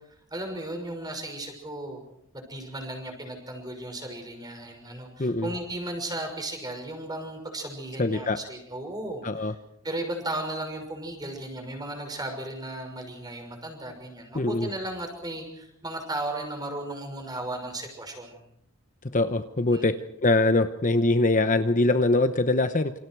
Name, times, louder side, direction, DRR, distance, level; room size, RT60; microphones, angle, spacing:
voice 1, 0.3-2.0 2.3-9.5 9.8-18.4 19.7-19.9, right 1 dB, 20° right, 4 dB, 6.0 m, -35 dB
voice 2, 8.0-8.4 9.2-9.5 14.3-14.7 19.1-19.9 20.2-22.9, left 2 dB, 35° left, 9 dB, 0.9 m, -23 dB
28.0 x 26.5 x 4.8 m, 0.74 s
head